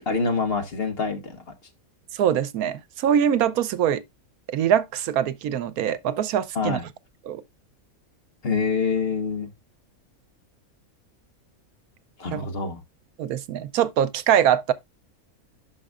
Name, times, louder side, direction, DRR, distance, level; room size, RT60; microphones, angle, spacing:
voice 1, 0.1-1.5 6.5-6.8 8.4-9.5 12.2-12.8, left 4 dB, 45° left, 1.5 m, -26 dB
voice 2, 2.1-4.0 4.5-6.8 7.3-7.4 12.3-12.5 13.2-14.7, right 9 dB, 90° right, 1.2 m, -23 dB
11.5 x 5.0 x 2.4 m
omnidirectional pair, 1.5 m